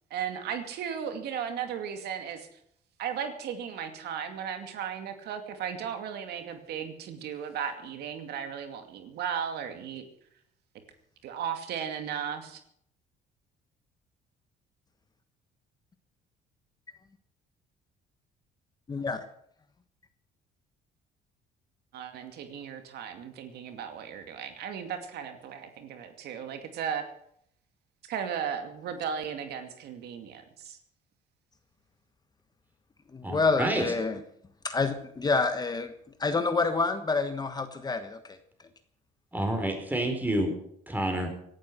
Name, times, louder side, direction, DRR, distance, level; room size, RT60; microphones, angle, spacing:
voice 1, 0.1-2.5 3.0-10.0 11.2-12.6 21.9-27.0 28.1-30.8, right 8 dB, 75° right, 7 dB, 2.4 m, -36 dB
voice 2, 18.9-19.2 33.3-34.2 34.6-35.9 36.2-38.1, left 4 dB, 25° left, 9 dB, 1.3 m, -27 dB
voice 3, 33.2-33.8 39.3-40.5 40.9-41.3, right 1 dB, 10° right, 5 dB, 4.5 m, -28 dB
17.5 x 12.0 x 6.1 m, 0.68 s
cardioid pair, 110°, 17 cm